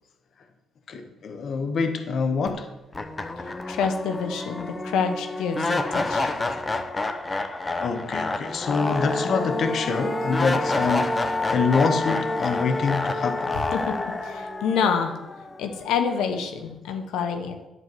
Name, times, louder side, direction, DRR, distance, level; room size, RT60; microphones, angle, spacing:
voice 1, 0.9-2.7 7.8-13.6, left 4 dB, 60° left, 7 dB, 1.1 m, -26 dB
sound 1, 2.5-2.6 2.9-16.0, left 2 dB, 25° left, 1.1 m, -28 dB
voice 2, 3.7-6.4 13.7-13.9 14.2-15.2 15.6-17.6, left 6 dB, 90° left, 6 dB, 1.1 m, -27 dB
11.0 x 4.6 x 7.8 m, 0.98 s
cardioid pair, 90°, 0 cm